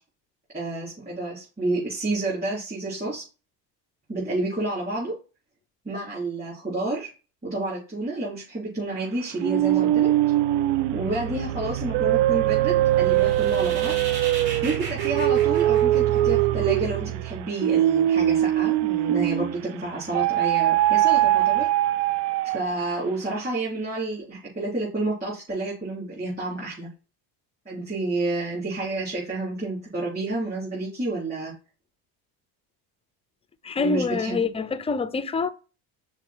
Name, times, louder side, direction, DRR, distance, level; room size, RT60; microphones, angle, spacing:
voice 1, 0.5-3.2 4.1-5.2 5.8-7.1 7.4-10.1 10.9-13.9 14.6-21.7 22.4-26.9 27.7-31.5 33.8-34.4, right 2 dB, 20° right, 3.9 m, -29 dB
sound 1, 9.4-19.6 20.1-22.9, right 13 dB, 75° right, 0.6 m, -22 dB
sound 2, 13.0-16.6, right 4 dB, 55° right, 3.1 m, -37 dB
voice 2, 33.6-35.5, left 4 dB, 15° left, 0.4 m, -26 dB
5.9 x 4.6 x 4.5 m
cardioid pair, 120°, 46 cm